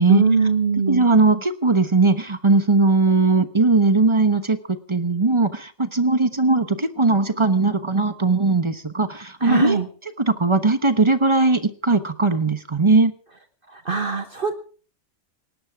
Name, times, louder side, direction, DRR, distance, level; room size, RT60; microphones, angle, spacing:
voice 1, 0.1-1.1 9.4-9.9 13.7-14.5, right 5 dB, 45° right, 8 dB, 1.4 m, -21 dB
voice 2, 0.9-9.8 10.2-13.1, right 3 dB, 25° right, 11 dB, 1.1 m, -19 dB
18.5 x 18.5 x 3.6 m, 0.39 s
omnidirectional pair, 1.3 m